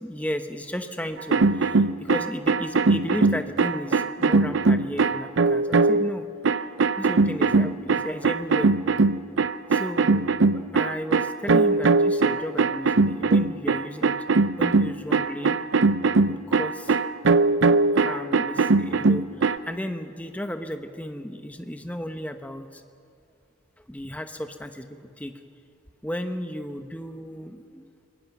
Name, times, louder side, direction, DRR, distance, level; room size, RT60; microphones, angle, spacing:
voice 1, 0.0-6.2 7.0-8.7 9.7-14.3 14.6-15.6 16.3-17.0 17.7-22.8 23.8-25.3 26.0-27.9, equal, 5° left, 7 dB, 1.0 m, -34 dB
sound 1, 1.2-6.1 6.4-19.6, right 3 dB, 65° right, 0.6 m, -21 dB
25.5 x 21.5 x 6.1 m, 2.4 s
head